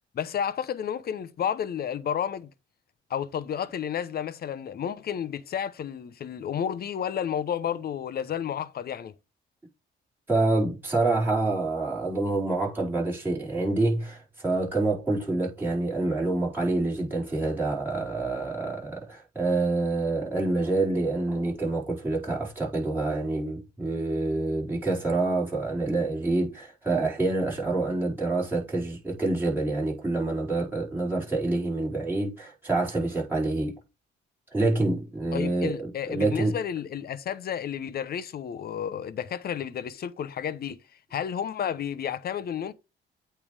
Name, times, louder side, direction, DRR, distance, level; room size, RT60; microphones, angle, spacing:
voice 1, 0.1-2.5 3.1-9.1 35.3-40.8 41.1-42.7, left 8 dB, 50° left, 0.7 m, -31 dB
voice 2, 10.3-33.8 34.5-36.6, right 2 dB, 10° right, 4.8 m, -27 dB
8.6 x 3.4 x 4.7 m
cardioid pair, 90°, 20 cm